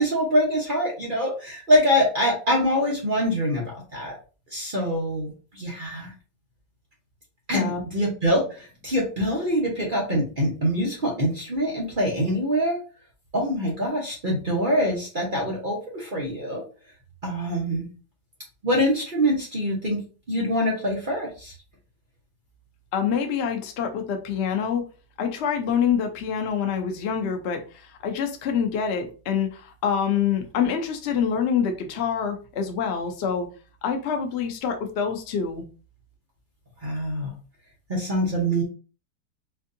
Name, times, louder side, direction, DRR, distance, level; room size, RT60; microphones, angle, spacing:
voice 1, 0.0-4.2 4.5-6.1 7.5-12.8 13.3-16.6 17.2-17.9 18.6-20.0 20.3-21.5 36.8-37.3 37.9-38.6, equal, 40° right, -2 dB, 0.8 m, -24 dB
voice 2, 22.9-24.8 25.2-33.5 33.8-35.6, left 7 dB, 75° left, 5 dB, 0.6 m, -26 dB
4.5 x 2.6 x 2.5 m, 0.35 s
omnidirectional pair, 1.9 m